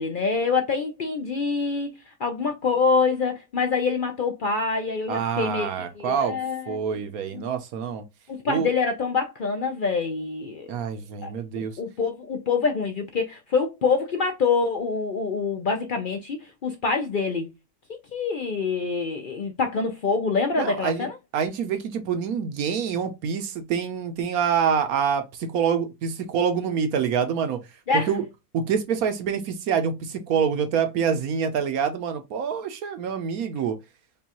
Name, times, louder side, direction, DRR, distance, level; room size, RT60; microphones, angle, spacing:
voice 1, 0.0-1.9 2.2-5.7 6.0-6.8 7.3-7.4 8.3-10.7 11.2-17.5 18.1-21.2 27.9-28.1, left 4 dB, 85° left, 0.4 m, -25 dB
voice 2, 5.1-6.4 6.7-8.0 8.5-8.7 10.7-11.7 20.6-21.1 21.3-27.6 28.1-28.2 28.5-33.8, right 7 dB, 70° right, 1.0 m, -26 dB
5.3 x 2.4 x 2.9 m
omnidirectional pair, 1.7 m